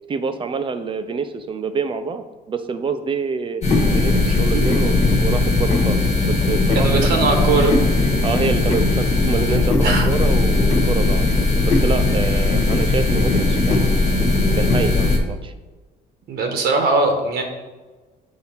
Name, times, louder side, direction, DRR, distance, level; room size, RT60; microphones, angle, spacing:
voice 1, 0.1-3.6 3.9-4.9 5.2-7.1 8.2-11.3 11.6-14.1 14.5-15.5, right 5 dB, 30° right, 9 dB, 0.6 m, -26 dB
sound 1, 3.6-15.2, left 2 dB, 40° left, 1.4 m, -18 dB
voice 2, 6.7-7.7 9.8-10.1 16.3-17.4, right 3 dB, 70° right, 3 dB, 1.1 m, -20 dB
7.5 x 2.8 x 5.7 m, 1.3 s
cardioid pair, 110°, 17 cm